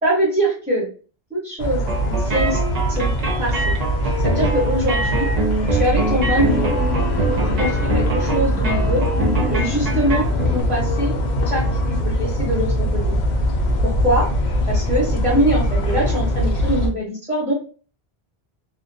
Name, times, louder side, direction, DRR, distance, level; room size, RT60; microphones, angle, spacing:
voice 1, 0.0-0.9 1.3-2.6 2.9-3.1 3.4-3.7 4.2-5.3 5.7-6.7 7.4-9.0 9.5-11.2 11.4-13.2 13.8-14.3 14.7-17.5, right 1 dB, 5° right, -7 dB, 0.8 m, -23 dB
sound 1, 1.6-16.9, equal, 55° left, 0.6 m, -22 dB
sound 2, 1.8-10.6, right 2 dB, 45° right, 0.6 m, -25 dB
sound 3, 5.9-12.0, left 3 dB, 85° left, 0.8 m, -30 dB
2.5 x 2.1 x 2.6 m, 0.38 s
omnidirectional pair, 1.1 m